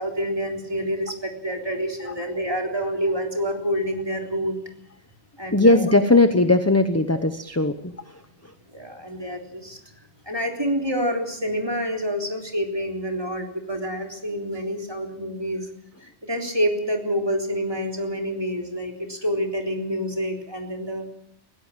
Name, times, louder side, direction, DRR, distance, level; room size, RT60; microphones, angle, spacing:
voice 1, 0.0-4.6 5.4-5.9 7.1-7.2 8.7-9.8 10.3-15.7 16.0-21.1, equal, 20° right, 2 dB, 3.7 m, -27 dB
voice 2, 5.5-7.9, left 2 dB, 15° left, 9 dB, 0.9 m, -18 dB
21.5 x 16.5 x 7.5 m, 0.71 s
omnidirectional pair, 1.1 m